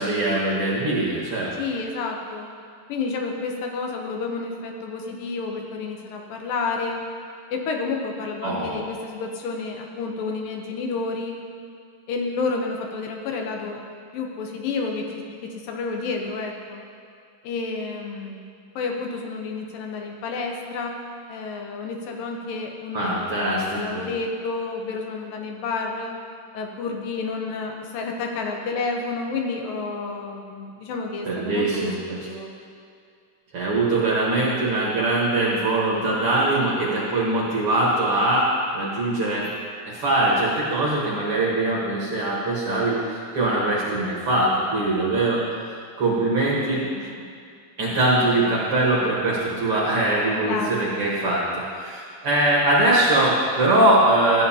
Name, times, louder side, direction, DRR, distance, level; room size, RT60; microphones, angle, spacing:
voice 1, 0.0-1.5 8.4-8.9 22.9-24.0 31.2-32.2 33.5-39.5 39.9-45.4 46.0-46.8 47.8-54.4, right 2 dB, 55° right, -6 dB, 1.7 m, -22 dB
voice 2, 1.5-2.5 2.9-7.0 7.5-11.4 12.1-13.8 14.1-16.8 17.4-18.4 18.8-21.0 21.3-26.2 26.5-32.5 36.6-36.7 46.9-47.1 50.4-50.8, left 4 dB, 80° left, 1 dB, 2.5 m, -30 dB
13.5 x 9.3 x 2.8 m, 2.3 s
omnidirectional pair, 4.0 m